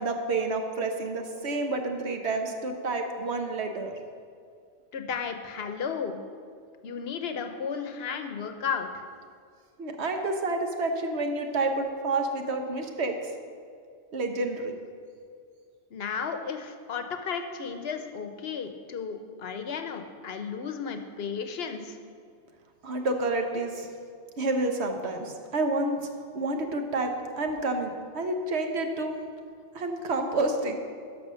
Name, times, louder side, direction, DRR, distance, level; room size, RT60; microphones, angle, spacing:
voice 1, 0.0-4.0 9.8-13.3 14.1-14.7 22.8-23.9 24.4-26.1 26.3-29.1 29.7-30.8, right 2 dB, 70° right, 4 dB, 1.3 m, -29 dB
voice 2, 4.9-6.2 6.8-9.0 15.9-22.0, left 6 dB, 65° left, 7 dB, 1.0 m, -34 dB
12.5 x 5.7 x 6.2 m, 2.2 s
omnidirectional pair, 1.2 m